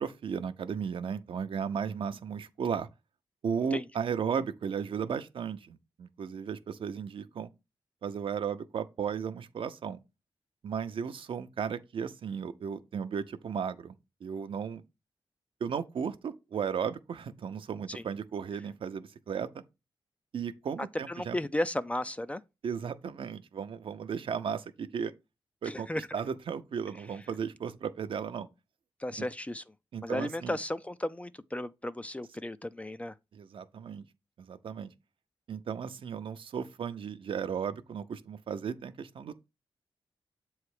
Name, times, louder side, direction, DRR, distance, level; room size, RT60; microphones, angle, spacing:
voice 1, 0.0-2.9 3.4-7.5 8.0-10.0 10.6-13.9 14.2-14.8 15.6-19.5 20.3-21.4 22.6-25.1 25.6-28.5 29.2-29.3 29.9-30.6 33.3-34.0 34.4-34.9 35.5-39.5, right 7 dB, 75° right, 0.6 m, -35 dB
voice 2, 21.1-22.4 25.6-26.0 29.0-29.6 30.0-33.1, left 1 dB, 15° left, 0.4 m, -34 dB
7.6 x 3.2 x 4.8 m
wide cardioid pair, 90°, 9 cm